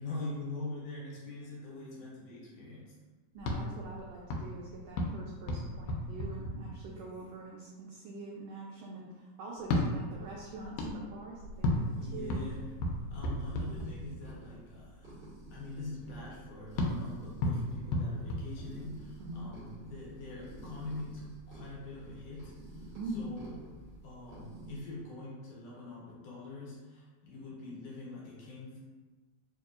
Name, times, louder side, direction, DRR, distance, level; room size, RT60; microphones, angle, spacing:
voice 1, 0.0-2.9 6.8-7.3 11.9-12.7 13.1-15.1 15.5-23.6 24.0-28.8, left 2 dB, 70° left, -6 dB, 1.8 m, -44 dB
voice 2, 3.3-12.5 19.2-19.5 22.9-23.3, right 2 dB, 85° right, -3 dB, 1.4 m, -44 dB
sound 1, 3.4-7.2 9.6-14.4 16.8-19.2, left 1 dB, 85° left, 2.0 m, -35 dB
sound 2, 11.5-24.8, right 1 dB, 40° right, 0.9 m, -50 dB
4.4 x 2.7 x 2.4 m, 1.3 s
omnidirectional pair, 3.4 m